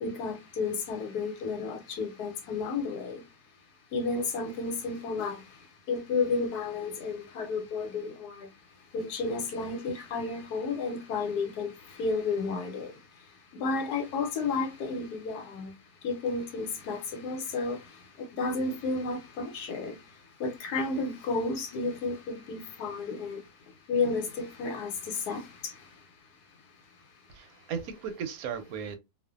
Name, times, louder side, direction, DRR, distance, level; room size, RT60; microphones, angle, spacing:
voice 1, 0.0-3.2 3.9-5.4 5.9-8.5 8.9-12.9 13.5-15.7 16.0-17.8 18.2-20.0 20.4-23.4 23.9-25.7, left 4 dB, 85° left, 1.2 m, -32 dB
voice 2, 27.3-29.0, right 7 dB, 75° right, 1.0 m, -36 dB
2.5 x 2.4 x 2.4 m
omnidirectional pair, 1.7 m